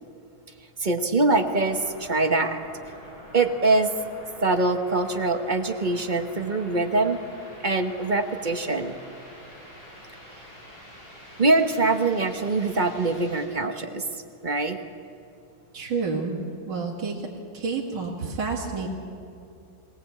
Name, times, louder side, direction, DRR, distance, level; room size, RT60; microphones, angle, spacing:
voice 1, 0.8-2.6 3.3-3.9 4.4-7.2 7.6-9.0 11.4-14.1 14.4-14.8, right 3 dB, 30° right, 7 dB, 0.9 m, -23 dB
sound 1, 1.3-13.5, equal, 50° left, 6.7 m, -46 dB
voice 2, 15.7-16.4 16.7-17.3 17.5-18.9, right 4 dB, 65° right, -3 dB, 2.8 m, -29 dB
22.5 x 18.5 x 8.5 m, 2.6 s
omnidirectional pair, 2.1 m